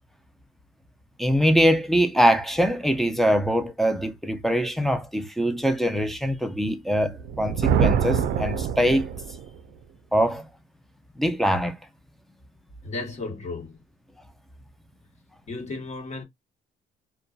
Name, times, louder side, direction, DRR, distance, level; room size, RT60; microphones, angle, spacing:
voice 1, 1.2-9.1 10.1-10.5 11.2-11.7, equal, ahead, 0.5 m, -23 dB
Thunder, 7.1-9.6, right 8 dB, 70° right, 0.4 m, -25 dB
voice 2, 12.8-13.8 15.5-16.2, left 3 dB, 40° left, 1.2 m, -34 dB
2.6 x 2.2 x 2.3 m
cardioid pair, 115°, 17 cm